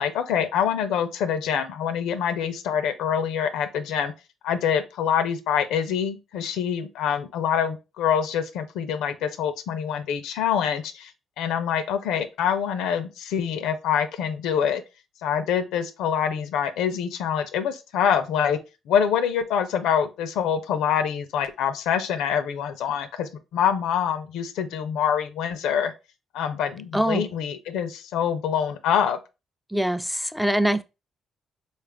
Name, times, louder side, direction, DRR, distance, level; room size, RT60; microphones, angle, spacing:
voice 1, 0.0-4.1 4.4-11.1 11.4-14.8 15.2-18.6 18.9-25.9 26.3-29.2, left 8 dB, 90° left, 0.4 m, -25 dB
voice 2, 26.9-27.2 29.7-30.8, right 1 dB, ahead, 0.3 m, -23 dB
4.1 x 2.4 x 3.4 m
cardioid pair, 90°, 0 cm